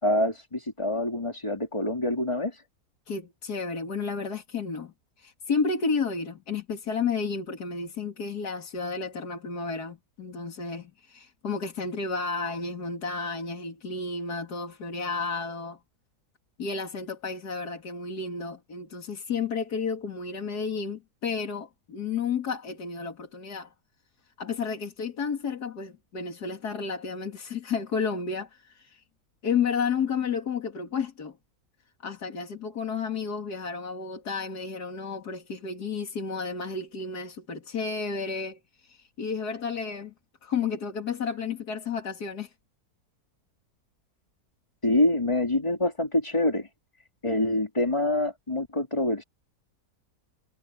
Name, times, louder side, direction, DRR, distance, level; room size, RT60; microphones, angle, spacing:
voice 1, 0.0-2.6 44.8-46.7 47.2-49.2, left 1 dB, 20° left, 2.7 m, -26 dB
voice 2, 3.1-15.8 16.6-23.7 24.4-29.0 29.4-31.4 32.0-40.1 40.4-42.5, left 5 dB, 90° left, 2.8 m, -32 dB
omnidirectional pair, 1.7 m